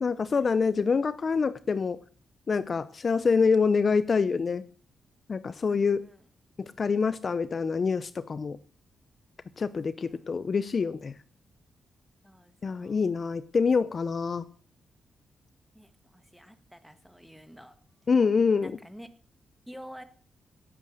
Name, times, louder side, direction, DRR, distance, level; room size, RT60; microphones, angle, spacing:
voice 1, 0.0-2.0 2.5-4.6 5.3-6.1 6.6-8.6 9.6-11.2 12.6-14.4 18.1-18.8, left 5 dB, 40° left, 16 dB, 0.6 m, -26 dB
voice 2, 5.7-6.2 9.7-10.2 12.2-13.0 15.7-17.8 18.6-19.1 19.7-20.0, equal, ahead, 10 dB, 1.5 m, -49 dB
17.0 x 8.4 x 6.4 m, 0.43 s
cardioid pair, 100°, 0 cm